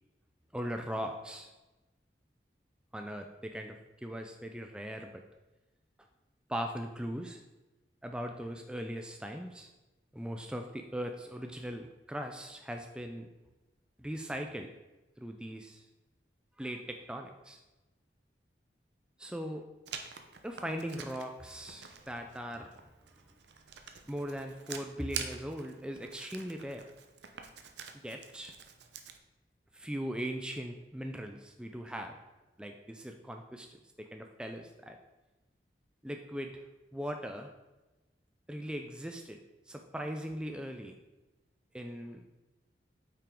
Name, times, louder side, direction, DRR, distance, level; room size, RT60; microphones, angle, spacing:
voice 1, 0.5-1.5 2.9-5.2 6.5-7.4 8.0-9.7 10.1-13.3 14.0-14.7 15.2-15.9 16.6-17.6 19.2-19.7 20.4-22.8 24.1-26.9 28.0-28.5 29.7-32.2 32.6-35.0 36.0-36.6 36.9-37.5 38.5-39.4 39.7-41.0 41.7-42.3, equal, 5° right, 4 dB, 0.4 m, -39 dB
Writing, 19.9-29.2, right 7 dB, 80° right, 0.7 m, -46 dB
8.6 x 5.7 x 3.7 m, 1.1 s
head